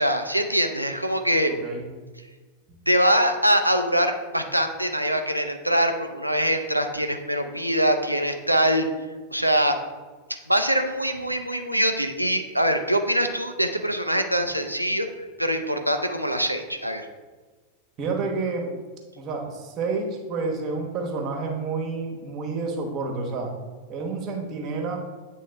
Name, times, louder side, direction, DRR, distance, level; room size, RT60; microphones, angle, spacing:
voice 1, 0.0-1.5 2.9-8.9 9.3-9.8 10.5-15.1 15.4-17.1, equal, 90° right, 6 dB, 0.5 m, -23 dB
voice 2, 1.5-1.9 18.0-18.7 19.2-23.5 23.9-25.0, right 4 dB, 35° right, 1 dB, 1.1 m, -29 dB
8.4 x 3.4 x 3.4 m, 1.4 s
figure-of-eight pair, 90°, 0 cm